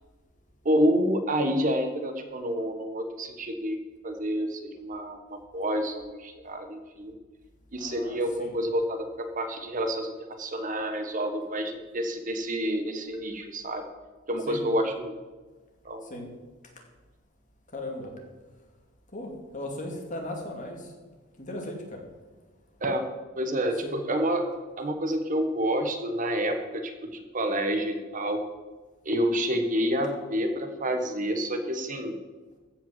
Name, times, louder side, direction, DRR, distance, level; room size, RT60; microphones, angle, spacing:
voice 1, 0.6-7.1 7.7-13.8 14.3-15.2 15.8-16.0 22.8-23.0 23.4-24.4 24.8-28.4 29.0-32.1, equal, 40° right, 6 dB, 1.2 m, -28 dB
voice 2, 7.7-8.6 14.5-14.6 16.0-16.3 17.7-18.3 19.1-20.9 21.4-22.0 23.8-24.0, left 1 dB, 35° left, 1 dB, 2.3 m, -37 dB
15.0 x 5.7 x 7.4 m, 1.3 s
head